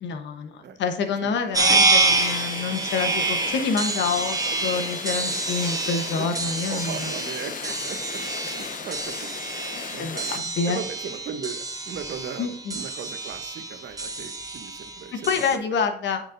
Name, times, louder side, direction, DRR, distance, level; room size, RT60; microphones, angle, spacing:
voice 1, 0.0-7.1 8.7-8.8 10.0-10.8 12.4-12.8 15.1-16.2, left 5 dB, 90° left, 7 dB, 1.1 m, -27 dB
voice 2, 1.2-1.9 2.2-2.3 6.2-6.3 6.7-8.2 8.5-9.3 9.6-10.3 10.7-15.3, right 7 dB, 75° right, 9 dB, 1.0 m, -38 dB
sound 1, 1.5-15.6, right 3 dB, 20° right, 1.1 m, -27 dB
sound 2, 2.0-10.4, left 6 dB, 50° left, 0.6 m, -36 dB
9.2 x 6.2 x 2.6 m, 0.64 s
cardioid pair, 70°, 18 cm